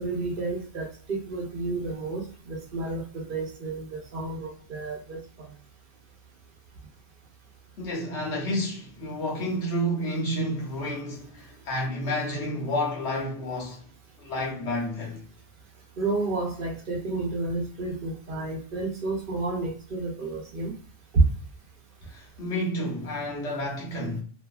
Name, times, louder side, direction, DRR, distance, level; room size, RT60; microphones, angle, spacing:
voice 1, 0.0-5.5 16.0-20.7 21.1-21.2, right 3 dB, 55° right, 0.8 m, -30 dB
voice 2, 7.8-13.8 14.2-15.2 22.0-24.2, equal, 85° left, 1.2 m, -30 dB
2.6 x 2.4 x 2.2 m
omnidirectional pair, 1.1 m